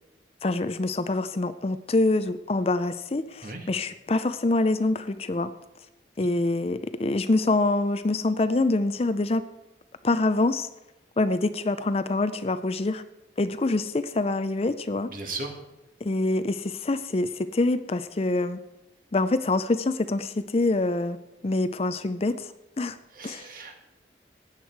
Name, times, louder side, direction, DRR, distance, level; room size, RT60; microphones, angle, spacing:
voice 1, 0.4-5.5 6.2-9.4 10.0-10.7 11.2-13.0 13.4-15.1 16.0-18.6 19.1-21.2 21.4-23.0 23.2-23.5, left 2 dB, 35° left, 12 dB, 0.5 m, -25 dB
voice 2, 15.1-15.5 23.1-23.7, right 3 dB, 50° right, 3 dB, 1.9 m, -36 dB
16.0 x 9.6 x 4.6 m, 0.93 s
head